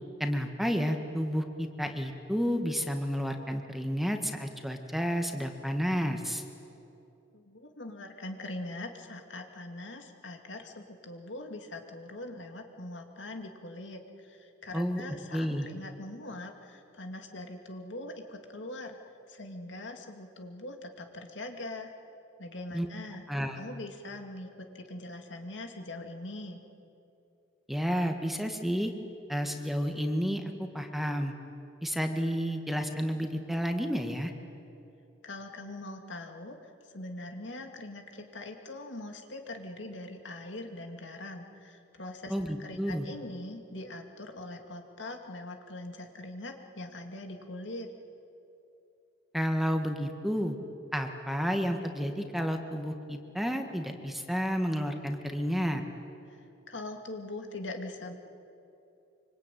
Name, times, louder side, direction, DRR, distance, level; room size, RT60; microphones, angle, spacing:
voice 1, 0.2-6.4 14.7-15.0 15.3-15.7 22.7-22.9 23.3-23.6 27.7-28.9 29.3-31.3 31.8-34.3 42.3-43.1 49.3-50.6 50.9-55.8, equal, ahead, 5 dB, 1.6 m, -31 dB
voice 2, 7.3-19.0 19.3-21.9 22.4-23.2 23.6-26.6 35.2-36.6 36.9-42.3 42.6-47.9 56.7-58.1, left 2 dB, 70° left, 4 dB, 2.4 m, -42 dB
25.0 x 25.0 x 9.3 m, 2.7 s
head